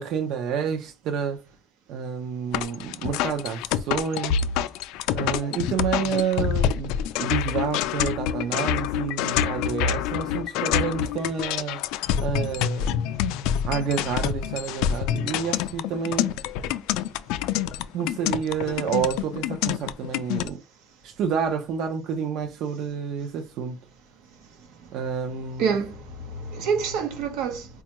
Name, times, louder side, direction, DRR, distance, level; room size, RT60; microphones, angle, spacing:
voice 1, 0.0-1.4 1.9-4.4 5.1-6.9 7.2-11.8 12.2-13.0 13.6-16.3 17.9-20.6 21.0-23.8 24.9-25.7, right 7 dB, 60° right, 0.5 m, -29 dB
sound 1, 2.5-20.5, left 9 dB, 90° left, 0.3 m, -26 dB
voice 2, 25.6-27.7, right 6 dB, 85° right, 0.8 m, -27 dB
4.3 x 2.3 x 2.9 m
cardioid pair, 165°, 0 cm